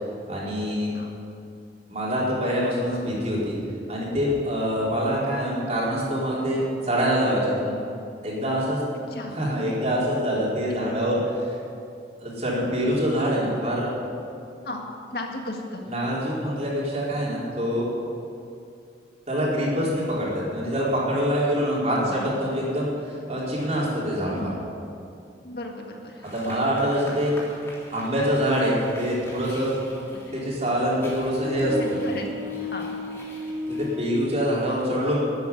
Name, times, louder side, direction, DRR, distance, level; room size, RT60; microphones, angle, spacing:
voice 1, 0.3-0.9 1.9-3.6 3.9-7.8 8.2-8.8 9.3-11.2 12.2-13.9 15.9-17.9 19.3-24.5 26.3-27.3 27.9-29.7 30.3-32.0 33.7-35.2, equal, 40° right, -6 dB, 4.4 m, -25 dB
voice 2, 15.1-15.9 21.9-22.3 24.3-24.6 25.4-26.3 30.1-30.4 31.8-33.0, left 1 dB, 60° left, 1 dB, 1.9 m, -36 dB
sound 1, 26.2-34.0, equal, 15° left, 3.5 m, -37 dB
13.5 x 9.2 x 9.7 m, 2.5 s
head